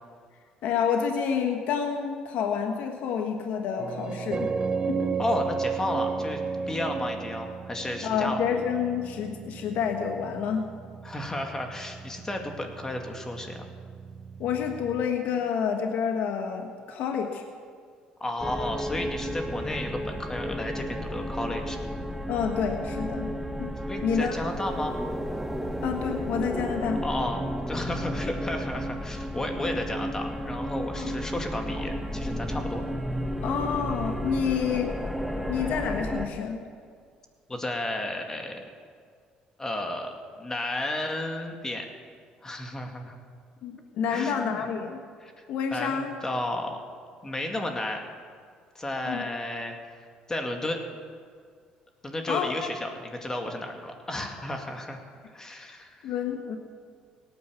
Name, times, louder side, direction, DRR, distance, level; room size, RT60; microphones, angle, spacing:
voice 1, 0.6-4.5 4.8-5.1 8.0-10.7 14.4-17.4 22.3-23.3 23.6-23.7 24.0-24.3 25.8-27.0 30.9-31.1 33.4-34.9 35.5-36.6 43.6-45.0 45.5-46.1 49.0-49.2 52.3-52.7 56.0-56.6, left 7 dB, 70° left, 4 dB, 1.4 m, -28 dB
sound 1, 3.8-15.0, right 5 dB, 30° right, 0.7 m, -34 dB
voice 2, 5.2-8.4 11.0-13.7 18.2-21.8 23.9-25.0 27.0-32.8 37.5-38.6 39.6-41.9 42.4-43.2 44.1-44.6 45.2-45.5 45.7-46.8 47.2-48.0 48.7-49.7 50.3-50.8 52.0-55.0 55.3-56.1, left 1 dB, 20° left, 3 dB, 2.3 m, -33 dB
sound 2, 18.4-36.3, equal, ahead, 1.2 m, -32 dB
17.5 x 9.8 x 7.0 m, 2.1 s
supercardioid pair, 90°, 3 cm